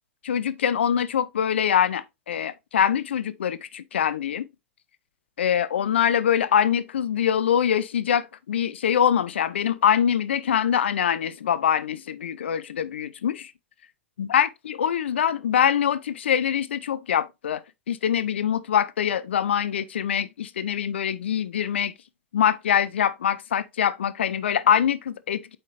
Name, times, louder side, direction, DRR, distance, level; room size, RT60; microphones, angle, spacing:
voice 1, 0.2-4.5 5.4-13.5 14.2-17.6 17.9-21.9 22.3-25.6, left 9 dB, 70° left, 0.7 m, -24 dB
8.3 x 5.2 x 2.6 m
figure-of-eight pair, 100°, 6 cm